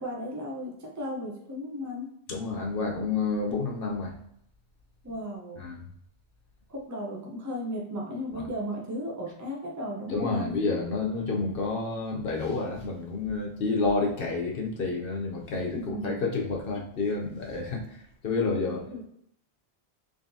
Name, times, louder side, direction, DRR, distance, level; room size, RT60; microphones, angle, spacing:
voice 1, 0.0-2.1 5.0-5.6 6.7-10.6 15.7-16.3 18.7-19.0, equal, 20° right, -2 dB, 0.7 m, -35 dB
voice 2, 2.3-4.1 5.6-5.8 8.3-8.4 10.1-18.8, left 3 dB, 60° left, 0 dB, 0.9 m, -29 dB
3.8 x 3.4 x 2.7 m, 0.71 s
omnidirectional pair, 1.1 m